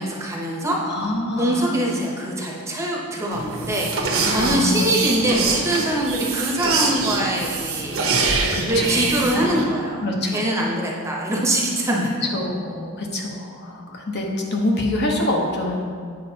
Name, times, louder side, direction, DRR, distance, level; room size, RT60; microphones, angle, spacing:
voice 1, 0.0-1.0 1.4-8.0 8.6-10.0 10.3-12.1, right 1 dB, 15° right, -3 dB, 0.8 m, -23 dB
voice 2, 0.8-1.7 4.4-4.9 8.5-9.5 10.0-10.4 12.2-15.8, left 1 dB, 50° left, -1 dB, 0.9 m, -25 dB
sound 1, 3.3-9.6, right 4 dB, 65° right, 0.9 m, -24 dB
9.0 x 5.3 x 2.8 m, 2.1 s
head